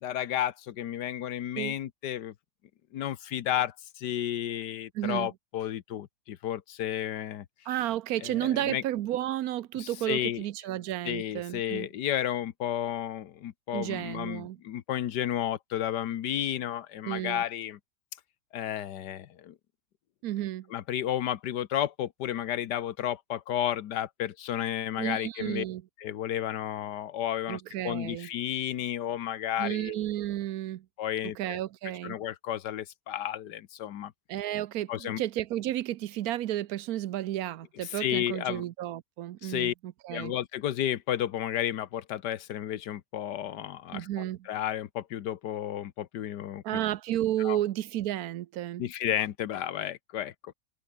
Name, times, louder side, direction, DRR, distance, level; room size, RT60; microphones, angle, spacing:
voice 1, 0.0-2.3 2.9-7.4 8.2-8.8 9.7-10.4 11.0-17.8 18.5-19.5 20.7-25.6 26.0-30.0 31.0-31.6 32.0-34.1 34.9-35.2 37.8-38.6 39.4-39.7 40.1-46.8 47.4-47.6 48.8-50.5, left 11 dB, 75° left, 1.5 m, -32 dB
voice 2, 4.9-5.3 7.7-11.9 13.7-14.6 17.1-17.4 20.2-20.7 25.0-25.8 27.5-28.3 29.6-30.8 31.4-32.2 34.3-40.3 43.9-44.4 46.6-48.8, right 13 dB, 65° right, 1.0 m, -32 dB
open air
omnidirectional pair, 1.9 m